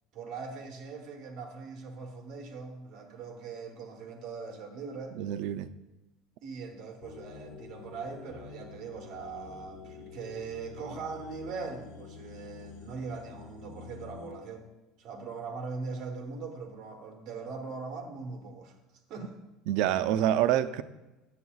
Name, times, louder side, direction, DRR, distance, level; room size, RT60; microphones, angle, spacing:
voice 1, 0.1-5.2 6.4-14.7 15.0-18.7 19.1-19.4, right 4 dB, 40° right, 1.0 m, -41 dB
voice 2, 5.1-5.7 19.7-20.8, right 11 dB, 55° right, 0.3 m, -26 dB
sound 1, 7.0-14.3, left 6 dB, 60° left, 0.8 m, -48 dB
9.4 x 7.1 x 2.3 m
cardioid pair, 175°, 0 cm